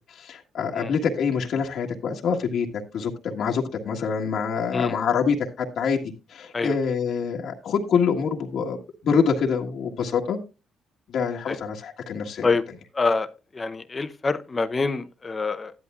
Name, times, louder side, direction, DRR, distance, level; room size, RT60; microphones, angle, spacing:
voice 1, 0.1-2.7 2.9-6.0 6.3-10.4 11.1-12.5, left 6 dB, 70° left, 1.6 m, -25 dB
voice 2, 12.9-13.3 13.5-15.7, left 4 dB, 30° left, 0.7 m, -25 dB
12.0 x 11.0 x 2.4 m
cardioid pair, 90°, 0 cm